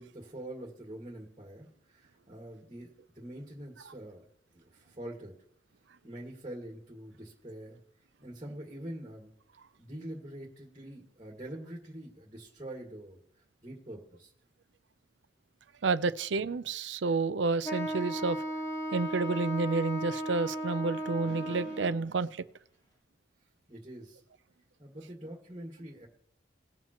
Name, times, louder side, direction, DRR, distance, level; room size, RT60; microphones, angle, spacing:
voice 1, 0.0-4.2 4.5-5.3 6.0-7.8 8.2-9.3 9.8-14.3 23.7-24.2 24.8-26.1, right 1 dB, 25° right, 1.9 m, -45 dB
voice 2, 15.8-18.4 18.9-22.3, right 3 dB, 90° right, 0.6 m, -30 dB
Wind instrument woodwind instrument, 17.6-22.1, right 1 dB, 20° left, 1.5 m, -35 dB
19.0 x 7.3 x 3.0 m
head